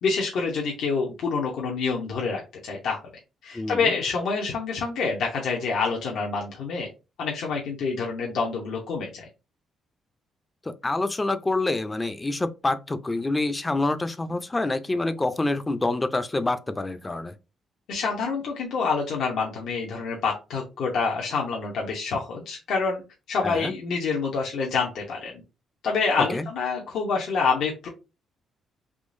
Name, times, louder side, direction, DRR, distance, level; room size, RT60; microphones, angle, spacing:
voice 1, 0.0-3.0 3.4-6.9 7.2-9.3 17.9-23.0 23.3-25.4 25.8-27.9, left 4 dB, 75° left, 0.8 m, -27 dB
voice 2, 3.5-3.9 10.6-17.3 23.4-23.7 26.3-26.4, left 2 dB, 20° left, 0.4 m, -27 dB
3.6 x 2.9 x 2.6 m
cardioid pair, 90°, 0 cm